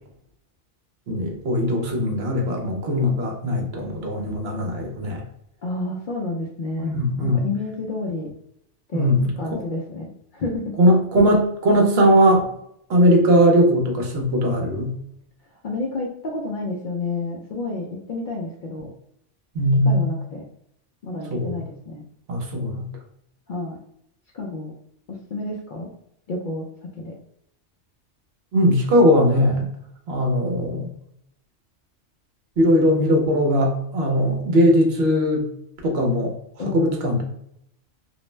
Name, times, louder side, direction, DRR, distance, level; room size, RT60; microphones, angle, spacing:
voice 1, 1.1-5.2 6.8-7.4 8.9-9.6 10.8-12.5 12.9-14.9 19.5-20.0 21.3-21.6 22.3-22.9 28.5-29.7 30.1-30.9 32.6-35.5 35.8-36.3 36.7-37.2, equal, 65° right, 2 dB, 0.8 m, -19 dB
voice 2, 5.6-6.9 7.2-8.3 8.9-9.1 9.4-10.7 15.6-18.9 19.9-20.4 21.0-22.0 23.5-23.8 24.3-24.7 25.1-25.9 26.3-26.7 27.0-27.1 36.6-37.1, left 2 dB, 60° left, -1 dB, 0.5 m, -30 dB
2.5 x 2.0 x 3.1 m, 0.74 s
omnidirectional pair, 1.3 m